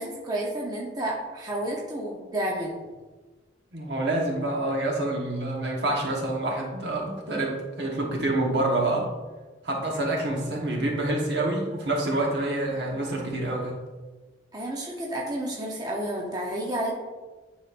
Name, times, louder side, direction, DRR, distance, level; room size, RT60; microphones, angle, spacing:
voice 1, 0.0-2.8 14.5-16.9, right 1 dB, 20° right, -2 dB, 0.7 m, -31 dB
voice 2, 3.7-9.1 9.6-13.8, right 2 dB, 70° right, -1 dB, 1.2 m, -27 dB
9.5 x 4.0 x 2.5 m, 1.2 s
head